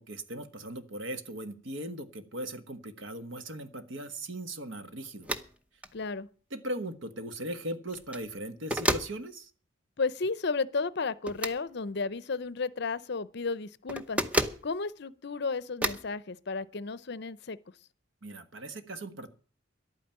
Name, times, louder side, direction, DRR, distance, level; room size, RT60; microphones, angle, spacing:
voice 1, 0.0-5.3 6.5-9.5 18.2-19.3, right 1 dB, 70° right, 1.4 m, -39 dB
sound 1, 5.2-5.5 5.8-5.9 7.9-8.3 8.7-9.1 11.3-11.6 13.9-14.6 15.8-16.1, equal, 5° right, 0.8 m, -30 dB
voice 2, 5.9-6.3 10.0-14.2 14.6-17.6, left 4 dB, 55° left, 0.6 m, -33 dB
11.5 x 9.1 x 8.9 m
head